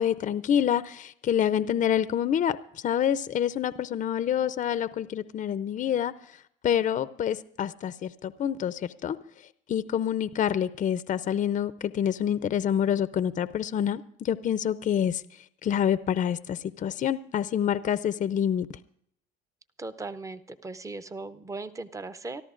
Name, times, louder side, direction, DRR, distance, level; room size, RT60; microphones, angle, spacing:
voice 1, 0.0-9.2 9.7-15.2 15.6-18.7, left 9 dB, 40° left, 0.5 m, -27 dB
voice 2, 19.8-22.4, right 3 dB, 15° right, 0.6 m, -38 dB
25.5 x 13.5 x 2.5 m
cardioid pair, 110°, 20 cm